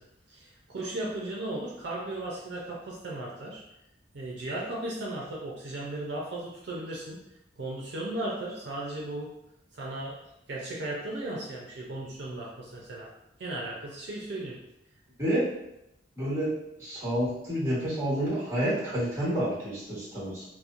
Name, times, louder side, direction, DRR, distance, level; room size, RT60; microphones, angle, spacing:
voice 1, 0.3-3.6 4.1-7.2 7.6-9.3 9.7-10.1 10.5-13.1 13.4-14.6, right 1 dB, 65° right, -4 dB, 0.5 m, -36 dB
voice 2, 16.2-16.5 16.8-20.4, equal, 15° right, -9 dB, 1.2 m, -29 dB
2.9 x 2.0 x 2.5 m, 0.85 s
head